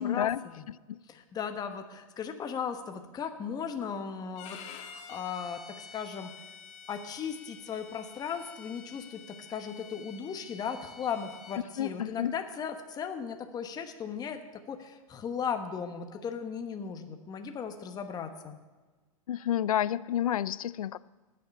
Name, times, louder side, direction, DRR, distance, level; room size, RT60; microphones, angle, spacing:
voice 1, 0.0-1.0 11.8-12.3 19.3-21.0, left 11 dB, 85° left, 20 dB, 0.4 m, -30 dB
voice 2, 1.1-6.3 6.9-14.4 14.7-18.6, left 7 dB, 20° left, 6 dB, 1.2 m, -37 dB
Bowed string instrument, 4.3-11.6, left 6 dB, 40° left, 1.5 m, -49 dB
19.5 x 6.8 x 5.4 m, 1.3 s
hypercardioid pair, 120°, 18 cm